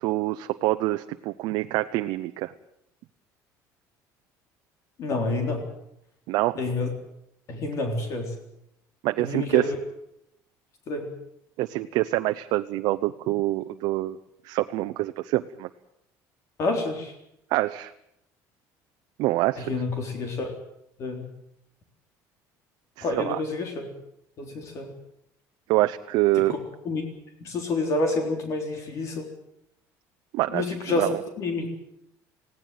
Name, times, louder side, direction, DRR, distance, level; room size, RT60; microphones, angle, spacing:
voice 1, 0.0-2.5 6.3-6.6 9.0-9.6 11.6-14.2 14.4-15.7 17.5-17.9 19.2-19.7 23.0-23.4 25.7-26.5 30.3-30.6 30.9-31.1, right 17 dB, 75° right, 8 dB, 0.8 m, -25 dB
voice 2, 5.0-5.6 6.6-6.9 7.5-8.3 9.2-9.8 10.9-11.1 16.6-17.1 19.6-20.5 21.0-21.3 23.0-23.9 24.4-24.9 26.3-26.6 26.8-27.0 27.4-29.3 30.5-31.1 31.4-31.7, left 2 dB, 45° left, 4 dB, 3.8 m, -28 dB
20.0 x 17.0 x 9.1 m, 0.79 s
cardioid pair, 155°, 7 cm